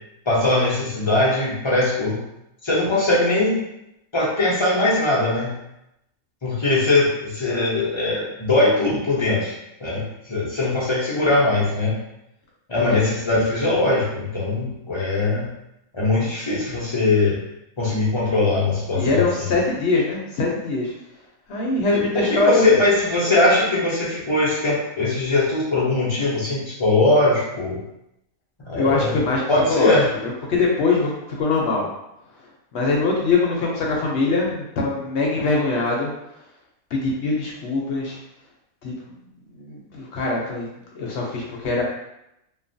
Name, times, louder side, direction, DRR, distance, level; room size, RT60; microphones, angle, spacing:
voice 1, 0.3-2.2 2.6-3.6 4.1-5.5 6.4-9.5 9.8-12.0 12.7-15.5 15.9-17.4 17.8-19.5 21.9-27.8 28.7-29.2 29.5-30.1, left 2 dB, 50° left, -6 dB, 0.3 m, -21 dB
voice 2, 18.9-20.9 21.5-22.7 28.7-29.4 29.7-31.1 31.4-31.9 32.7-36.1 36.9-38.2 38.8-38.9 39.6-40.7 40.9-41.8, left 3 dB, 65° left, -2 dB, 0.7 m, -22 dB
3.1 x 2.1 x 2.6 m, 0.84 s
omnidirectional pair, 1.5 m